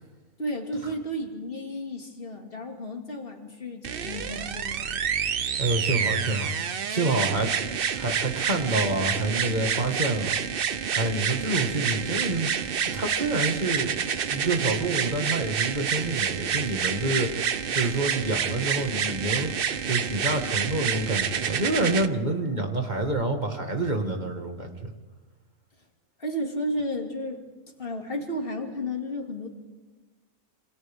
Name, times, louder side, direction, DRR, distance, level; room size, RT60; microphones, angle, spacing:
voice 1, 0.4-5.1 26.2-27.4 27.8-29.5, equal, 40° left, 2 dB, 2.5 m, -33 dB
sound 1, 3.8-22.1 23.0-23.1, right 7 dB, 50° right, 0.8 m, -28 dB
voice 2, 5.6-6.5 6.9-7.5 8.0-10.3 10.9-12.5 12.9-14.0 14.3-19.5 19.8-24.9, right 2 dB, 30° right, 3 dB, 1.9 m, -27 dB
28.0 x 25.5 x 3.6 m, 1.3 s
omnidirectional pair, 1.5 m